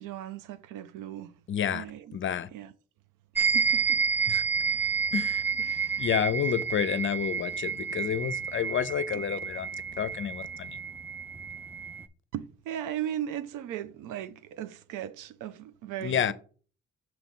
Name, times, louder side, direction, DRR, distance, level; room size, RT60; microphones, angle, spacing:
voice 1, 0.0-1.3 1.7-2.2 2.5-2.7 3.4-4.0 5.6-6.1 12.3-16.3, right 11 dB, 85° right, 0.5 m, -37 dB
voice 2, 1.5-1.8 2.1-2.5 4.3-4.4 5.1-5.4 6.0-9.7 10.0-10.8 16.0-16.3, left 8 dB, 40° left, 0.6 m, -29 dB
sound 1, 3.4-12.0, right 6 dB, 5° right, 0.4 m, -30 dB
6.1 x 3.1 x 5.3 m
cardioid pair, 90°, 30 cm